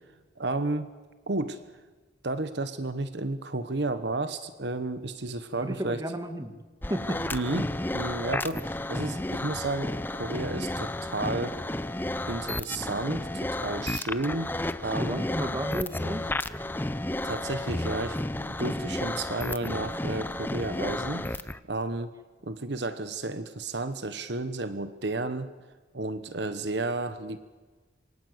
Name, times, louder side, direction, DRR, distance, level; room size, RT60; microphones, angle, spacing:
voice 1, 0.4-0.9 1.3-1.6 2.2-6.0 7.3-11.6 12.3-14.5 14.8-15.3 17.2-22.1 22.4-25.5 25.9-27.4, right 2 dB, 60° right, 11 dB, 1.2 m, -32 dB
voice 2, 5.5-6.5 6.9-7.2 15.0-16.3, right 1 dB, 20° right, 8 dB, 2.0 m, -33 dB
sound 1, 6.8-21.6, left 1 dB, 10° left, 0.7 m, -32 dB
26.5 x 23.5 x 8.0 m, 1.4 s
head